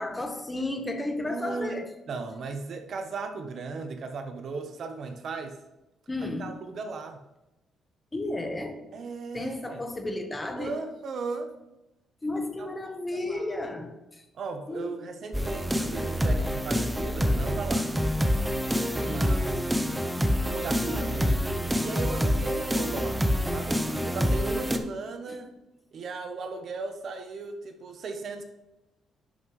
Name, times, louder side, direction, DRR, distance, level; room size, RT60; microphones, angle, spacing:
voice 1, 0.0-1.9 6.1-6.6 8.1-8.8 9.3-10.9 12.2-14.2 14.7-15.1 19.0-19.4 25.3-25.4, left 2 dB, 20° left, 1.2 m, -33 dB
voice 2, 1.2-5.6 6.2-7.2 8.9-9.8 10.6-11.5 12.6-12.7 13.1-13.4 14.3-17.9 19.0-19.6 20.4-21.4 21.8-25.5 25.9-28.4, right 4 dB, 60° right, 1.0 m, -37 dB
sound 1, 15.3-24.8, equal, 10° right, 0.8 m, -27 dB
11.5 x 5.6 x 3.2 m
cardioid pair, 90°, 0 cm